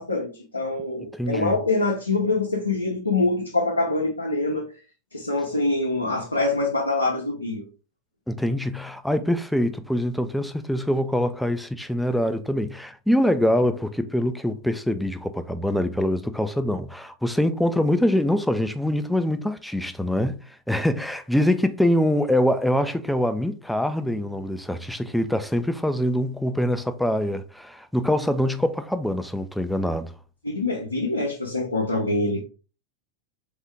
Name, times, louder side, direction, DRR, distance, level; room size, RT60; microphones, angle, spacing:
voice 1, 0.0-4.7 5.1-7.7 30.4-32.4, left 2 dB, 80° left, 0.7 m, -25 dB
voice 2, 1.2-1.6 8.3-20.4 20.7-30.1, left 1 dB, ahead, 0.4 m, -24 dB
3.6 x 3.5 x 3.4 m
figure-of-eight pair, 90°, 0 cm